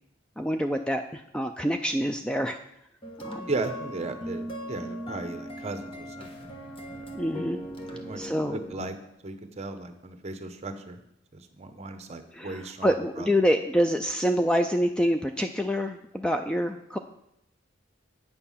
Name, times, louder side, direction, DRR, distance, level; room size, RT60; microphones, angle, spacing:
voice 1, 0.4-2.6 3.2-3.5 7.1-7.6 8.2-8.6 12.3-17.0, equal, 5° left, 6 dB, 0.3 m, -26 dB
sound 1, 3.0-8.8, equal, 30° left, 1.2 m, -39 dB
voice 2, 3.5-7.0 7.9-8.2 8.5-8.9 9.2-11.0 11.3-13.3, right 2 dB, 35° right, 8 dB, 0.9 m, -36 dB
9.1 x 6.7 x 5.6 m, 0.80 s
head